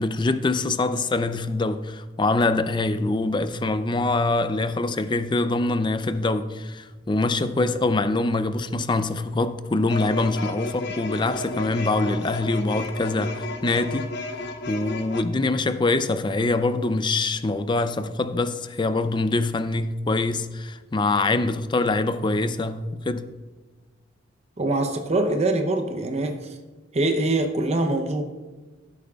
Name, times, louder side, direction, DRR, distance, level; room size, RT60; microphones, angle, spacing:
voice 1, 0.0-14.1 14.7-23.3, left 2 dB, 25° left, 0.5 m, -24 dB
sound 1, 9.9-15.2, left 2 dB, 65° left, 0.7 m, -33 dB
voice 2, 24.6-26.5 26.9-28.2, right 2 dB, 35° right, 0.7 m, -24 dB
16.0 x 8.4 x 2.3 m
head